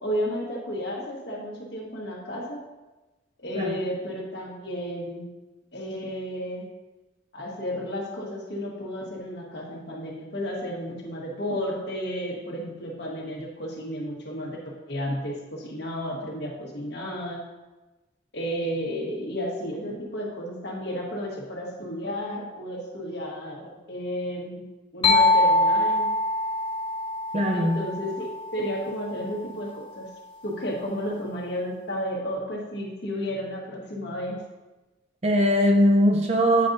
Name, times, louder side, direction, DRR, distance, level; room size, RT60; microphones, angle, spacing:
voice 1, 0.0-2.6 3.4-5.3 5.7-6.7 7.3-17.4 18.3-24.6 24.9-26.1 27.5-30.1 30.4-34.4, equal, 60° left, -2 dB, 1.4 m, -32 dB
sound 1, 25.0-28.7, left 2 dB, 25° left, 0.6 m, -23 dB
voice 2, 27.3-27.8 35.2-36.7, equal, 35° right, 2 dB, 0.7 m, -20 dB
8.6 x 5.2 x 2.6 m, 1.1 s
head